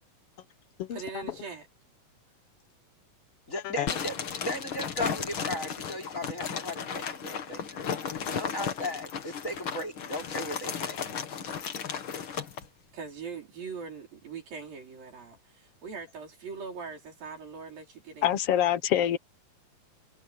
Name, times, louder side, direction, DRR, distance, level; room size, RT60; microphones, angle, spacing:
voice 1, 0.9-1.7 12.9-18.4, right 5 dB, 70° right, 6.6 m, -41 dB
voice 2, 3.5-7.8 8.3-11.0, left 1 dB, 20° left, 5.5 m, -36 dB
sound 1, 3.9-12.6, left 7 dB, 45° left, 1.8 m, -35 dB
voice 3, 18.2-19.2, left 11 dB, 70° left, 1.4 m, -25 dB
omnidirectional pair, 4.3 m